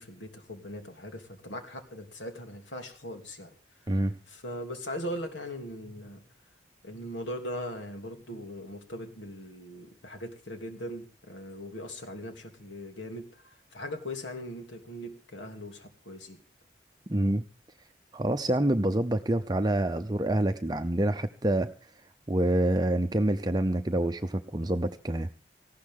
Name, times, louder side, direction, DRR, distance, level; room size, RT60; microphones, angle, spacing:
voice 1, 0.0-3.5 4.3-6.2 6.8-16.4, equal, 90° left, 5 dB, 3.0 m, -40 dB
voice 2, 17.1-17.4 18.1-21.9 22.3-25.3, right 1 dB, 20° right, 7 dB, 0.6 m, -27 dB
19.0 x 15.0 x 3.7 m, 0.37 s
head